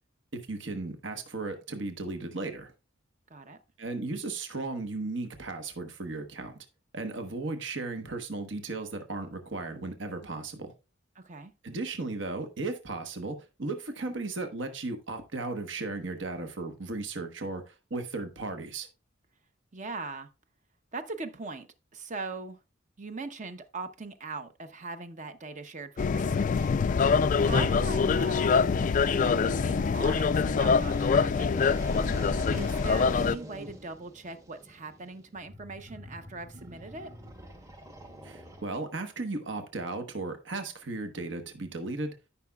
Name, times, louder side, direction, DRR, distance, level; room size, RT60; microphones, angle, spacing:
voice 1, 0.3-2.7 3.8-6.6 6.9-10.7 11.6-18.9 27.5-27.7 38.2-42.1, right 3 dB, 65° right, 1.2 m, -35 dB
voice 2, 3.3-3.6 11.2-11.5 19.7-20.3 20.9-21.7 21.9-22.6 23.0-26.7 27.4-37.1, right 3 dB, 40° right, 0.8 m, -40 dB
sound 1, 26.0-33.4, left 5 dB, 40° left, 0.3 m, -25 dB
sound 2, 29.5-39.0, equal, 15° right, 1.0 m, -43 dB
13.5 x 5.8 x 2.3 m
head